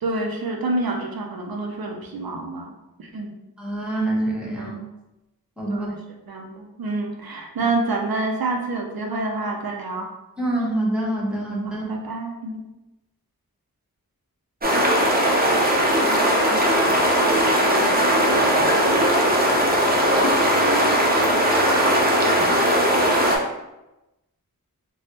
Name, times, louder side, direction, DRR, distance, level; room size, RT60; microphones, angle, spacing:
voice 1, 0.0-2.7 3.0-3.3 4.5-4.7 5.7-6.0 6.3-10.1 11.6-12.6, right 2 dB, 80° right, 1 dB, 0.5 m, -28 dB
voice 2, 3.6-4.7 5.6-5.9 10.4-11.8, right 1 dB, 5° right, -5 dB, 0.9 m, -25 dB
sound 1, 14.6-23.4, equal, 25° right, 0.6 m, -19 dB
3.2 x 2.2 x 2.8 m, 0.96 s
wide cardioid pair, 45°, 36 cm